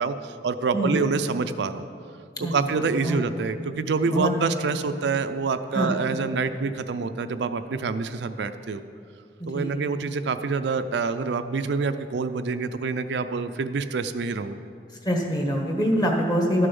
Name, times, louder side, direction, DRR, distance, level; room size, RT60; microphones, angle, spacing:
voice 1, 0.0-1.9 2.5-8.8 9.5-14.6, right 4 dB, 70° right, 9 dB, 0.4 m, -26 dB
voice 2, 2.4-2.7 3.0-3.2 4.0-4.3 5.7-5.9 9.4-9.7 15.0-16.7, equal, 25° left, 1 dB, 1.4 m, -24 dB
12.0 x 6.7 x 5.4 m, 2.3 s
head